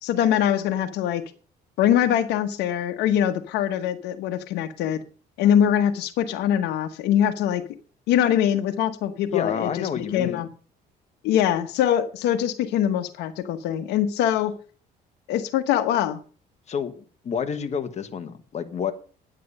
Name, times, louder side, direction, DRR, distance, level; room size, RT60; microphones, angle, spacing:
voice 1, 0.0-1.2 1.8-5.0 5.4-7.6 8.1-10.5 11.2-14.6 15.3-16.2, left 10 dB, 85° left, 10 dB, 1.1 m, -23 dB
voice 2, 9.3-10.5 16.7-18.9, left 7 dB, 40° left, 9 dB, 1.3 m, -29 dB
10.0 x 9.3 x 5.5 m, 0.40 s
cardioid pair, 110°, 17 cm